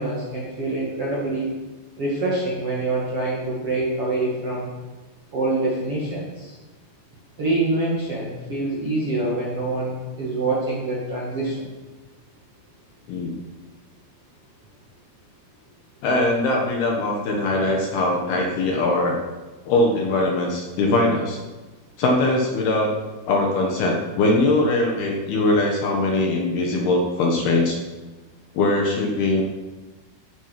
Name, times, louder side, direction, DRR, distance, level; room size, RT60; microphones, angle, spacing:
voice 1, 0.0-1.5 2.0-4.7 5.3-6.6 7.4-11.7, right 2 dB, 45° right, -5 dB, 2.1 m, -25 dB
voice 2, 16.0-19.2 19.6-21.4 22.0-22.9 23.3-27.8 28.5-29.4, left 2 dB, 65° left, 0 dB, 2.8 m, -21 dB
14.5 x 8.4 x 6.0 m, 1.2 s
omnidirectional pair, 5.8 m